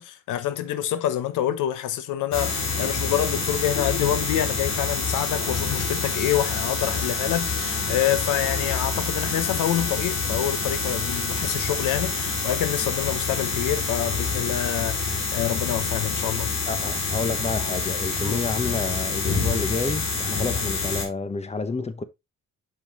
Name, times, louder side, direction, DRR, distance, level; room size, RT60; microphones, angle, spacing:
voice 1, 0.0-16.5 18.2-18.4, left 11 dB, 85° left, 0.8 m, -27 dB
sound 1, 2.3-21.1, left 4 dB, 60° left, 2.8 m, -27 dB
voice 2, 16.7-22.0, left 4 dB, 20° left, 0.9 m, -29 dB
6.7 x 5.4 x 3.0 m
cardioid pair, 90°, 30 cm